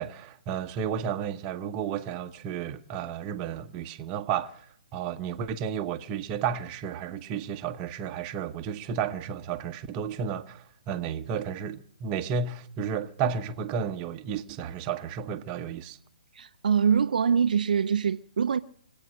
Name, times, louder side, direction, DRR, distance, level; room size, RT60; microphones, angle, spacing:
voice 1, 0.0-4.6 4.9-16.0, right 7 dB, 25° right, 0.9 m, -32 dB
voice 2, 16.3-18.6, right 7 dB, 65° right, 0.5 m, -24 dB
25.0 x 8.9 x 6.4 m
hypercardioid pair, 140°, 5 cm